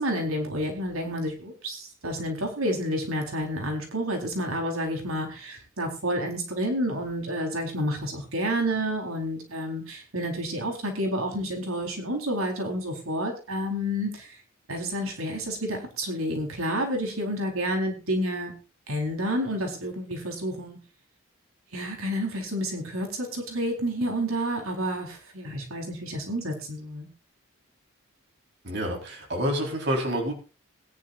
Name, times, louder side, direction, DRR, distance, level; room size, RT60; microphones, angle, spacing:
voice 1, 0.0-14.4 14.7-18.5 18.9-20.8 21.7-27.1, equal, 80° right, 2 dB, 4.3 m, -30 dB
voice 2, 28.6-30.3, equal, 55° right, 1 dB, 4.2 m, -28 dB
21.0 x 11.0 x 2.6 m, 0.33 s
head